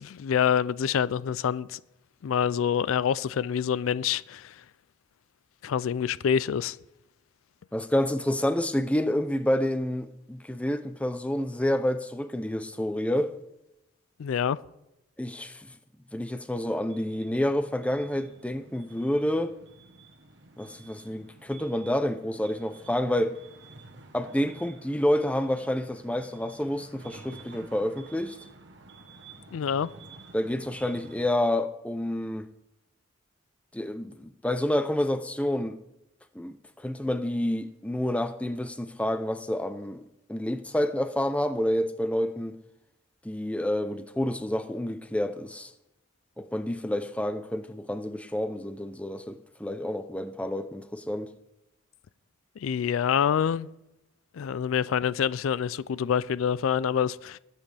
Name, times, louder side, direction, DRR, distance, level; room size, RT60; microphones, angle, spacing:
voice 1, 0.0-1.8 2.2-4.5 5.6-6.8 14.2-14.6 29.5-29.9 52.6-53.7 54.3-57.4, left 8 dB, 85° left, 0.4 m, -26 dB
voice 2, 7.7-13.3 15.2-15.7 16.1-19.6 20.6-23.3 24.1-28.4 30.3-32.5 33.7-35.8 36.3-40.0 40.3-42.6 43.2-45.7 46.4-51.3, left 1 dB, 5° left, 0.5 m, -29 dB
sound 1, 16.5-31.3, right 3 dB, 60° right, 1.2 m, -51 dB
20.5 x 8.3 x 3.4 m
head